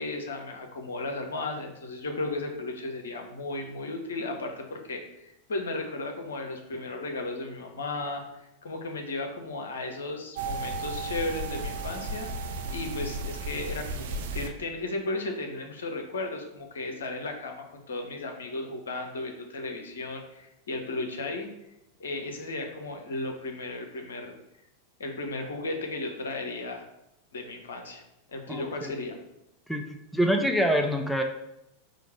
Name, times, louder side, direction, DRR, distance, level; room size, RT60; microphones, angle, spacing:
voice 1, 0.0-8.2 8.6-12.3 12.7-21.5 22.0-24.3 25.0-26.9 27.3-28.0 28.3-29.2, left 2 dB, 65° left, 3 dB, 0.7 m, -35 dB
sound 1, 10.4-14.5, right 2 dB, 55° right, 0.4 m, -34 dB
voice 2, 28.5-28.9 29.7-29.9 30.1-31.2, equal, 5° left, 4 dB, 0.4 m, -25 dB
4.8 x 2.5 x 4.4 m, 0.85 s
figure-of-eight pair, 90°, 0 cm